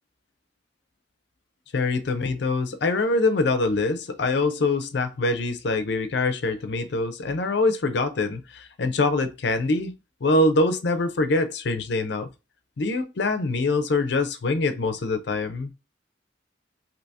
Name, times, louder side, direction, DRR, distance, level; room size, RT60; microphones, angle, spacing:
voice 1, 1.7-9.9 10.2-12.3 12.8-15.7, left 2 dB, 65° left, 0.5 m, -24 dB
3.4 x 2.8 x 2.7 m
head